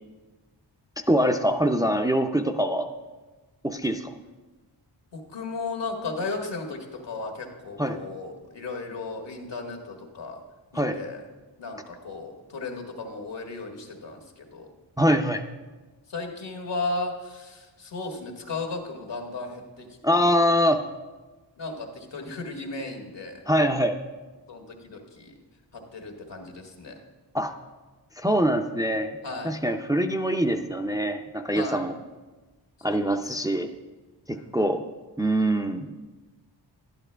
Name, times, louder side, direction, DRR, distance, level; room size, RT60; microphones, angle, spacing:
voice 1, 1.1-2.9 3.6-4.1 7.8-8.0 10.7-11.0 15.0-15.4 20.0-20.8 23.5-24.0 27.3-27.5 28.2-29.2 29.4-32.0 32.8-33.7 34.3-34.8 35.2-35.9, equal, 10° right, 4 dB, 0.4 m, -24 dB
voice 2, 5.1-10.4 10.7-11.2 11.6-14.7 16.1-20.3 21.6-23.4 24.5-25.3 25.7-26.9 29.2-29.5 31.5-31.8 32.9-33.1 34.3-34.5, left 3 dB, 70° left, 2 dB, 1.7 m, -35 dB
11.5 x 10.5 x 3.3 m, 1.2 s
wide cardioid pair, 85°, 44 cm